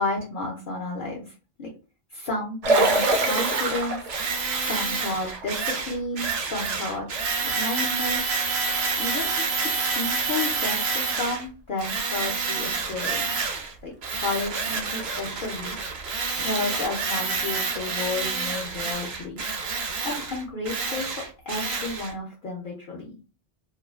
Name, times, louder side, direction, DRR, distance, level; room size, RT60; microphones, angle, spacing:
voice 1, 0.0-1.3 1.6-1.7 2.1-7.1 7.4-8.3 9.0-13.3 13.8-15.8 16.4-19.4 20.0-21.1 21.5-23.2, left 2 dB, 60° left, -3 dB, 0.7 m, -32 dB
sound 1, 2.6-5.8 6.4-6.5 10.0-10.1 11.0-11.1 13.0-13.1 13.5-13.6 14.2-15.0 15.4-15.6 16.5-17.4 17.7-18.6, right 2 dB, 50° right, 0.5 m, -28 dB
Tools, 2.7-11.4 11.8-13.7 14.0-22.1, right 4 dB, 90° right, 0.9 m, -28 dB
2.4 x 2.3 x 2.3 m, 0.34 s
omnidirectional pair, 1.0 m